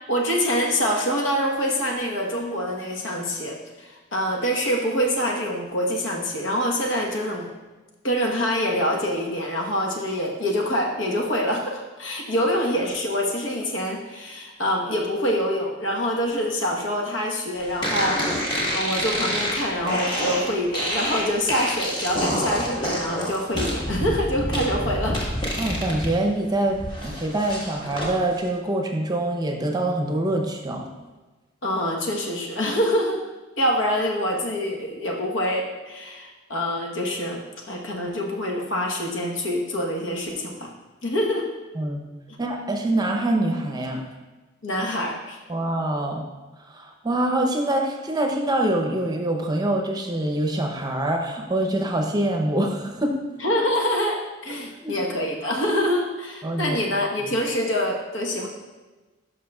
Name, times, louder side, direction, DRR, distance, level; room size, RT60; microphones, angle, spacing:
voice 1, 0.1-7.5 8.0-18.2 18.5-25.2 31.6-33.2 33.6-40.7 41.0-41.5 42.3-42.4 44.6-45.4 53.4-58.5, equal, 80° left, 0 dB, 1.2 m, -25 dB
sound 1, 17.8-26.1 26.5-28.1, equal, 25° left, 1.5 m, -27 dB
voice 2, 25.6-30.9 41.8-42.0 42.4-44.0 45.5-46.2 46.7-53.2 54.8-55.0 56.4-56.8, right 1 dB, 20° right, 2 dB, 0.7 m, -25 dB
12.0 x 5.5 x 2.3 m, 1.2 s
head